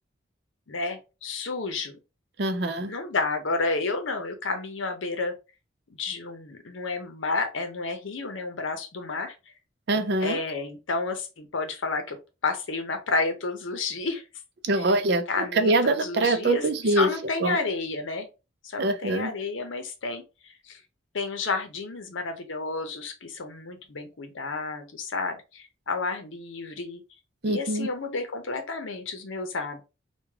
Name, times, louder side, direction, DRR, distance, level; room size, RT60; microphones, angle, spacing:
voice 1, 0.7-1.9 2.9-5.3 6.0-9.3 10.2-12.2 12.4-14.2 14.8-15.0 15.3-16.6 17.0-18.3 18.6-20.2 20.7-20.8 21.1-27.0 27.4-29.8, left 3 dB, 80° left, 0.7 m, -31 dB
voice 2, 2.4-2.9 9.9-10.4 14.6-17.1 17.4-17.6 18.8-19.3 27.4-27.9, right 2 dB, 55° right, 0.5 m, -24 dB
3.5 x 2.3 x 3.2 m
head